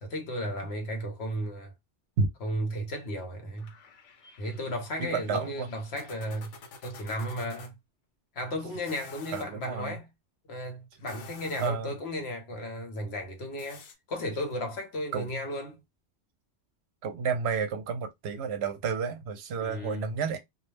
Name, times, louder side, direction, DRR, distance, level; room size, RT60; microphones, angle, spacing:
voice 1, 0.0-1.7 2.4-3.7 4.4-6.5 6.8-7.7 8.3-10.1 10.5-15.8 19.6-20.1, equal, 65° left, 1.1 m, -34 dB
sound 1, 3.6-7.7 8.7-9.5 10.9-11.9 13.6-13.9, left 4 dB, 80° left, 1.0 m, -49 dB
voice 2, 5.0-5.7 9.3-10.0 11.6-11.9 15.1-15.3 17.0-20.4, right 5 dB, 70° right, 0.8 m, -31 dB
2.4 x 2.0 x 3.2 m
omnidirectional pair, 1.2 m